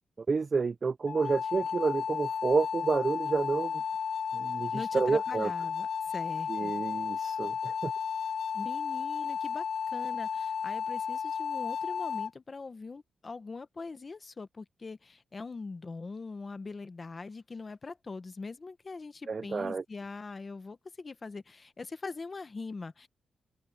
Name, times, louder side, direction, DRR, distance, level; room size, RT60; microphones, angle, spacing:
voice 1, 0.2-3.8 4.3-5.5 6.5-7.9 19.3-19.8, right 4 dB, 35° right, 0.4 m, -30 dB
sound 1, 1.1-12.3, left 7 dB, 60° left, 0.5 m, -33 dB
voice 2, 4.7-6.7 8.5-23.1, left 4 dB, 30° left, 0.9 m, -42 dB
open air
wide cardioid pair, 150°, 0 cm